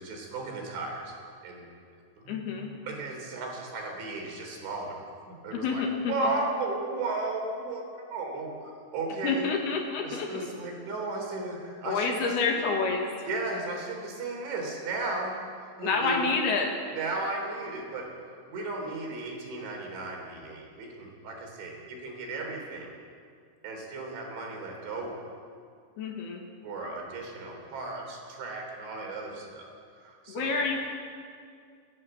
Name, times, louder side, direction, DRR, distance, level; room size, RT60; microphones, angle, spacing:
voice 1, 0.0-1.7 2.2-5.0 5.3-9.5 10.0-12.4 13.3-16.4 16.9-22.9 23.6-25.2 26.6-29.7 30.0-30.6, right 2 dB, 70° right, 1 dB, 5.8 m, -35 dB
voice 2, 2.3-2.7 5.5-6.1 9.2-10.5 11.9-13.3 15.8-16.7 26.0-26.4 30.3-30.8, left 4 dB, 65° left, 1 dB, 3.3 m, -28 dB
30.0 x 11.0 x 7.8 m, 2.2 s
omnidirectional pair, 5.5 m